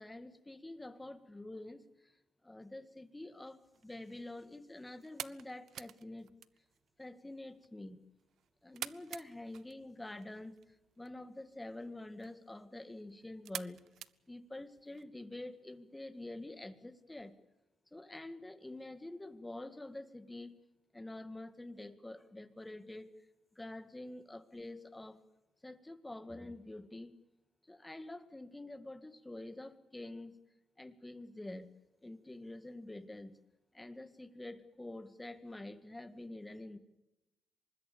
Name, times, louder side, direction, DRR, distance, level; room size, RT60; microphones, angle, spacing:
voice 1, 0.0-2.2 2.4-6.3 7.0-8.0 8.6-10.6 11.0-13.8 14.3-17.3 17.9-20.5 20.9-23.1 23.6-25.2 25.6-27.1 27.7-30.4 30.8-31.7 32.0-33.3 33.7-36.8, left 2 dB, 10° left, 11 dB, 2.0 m, -47 dB
sound 1, 3.6-15.0, right 10 dB, 70° right, 0.7 m, -51 dB
24.5 x 20.5 x 7.0 m, 0.97 s
cardioid pair, 90°, 0 cm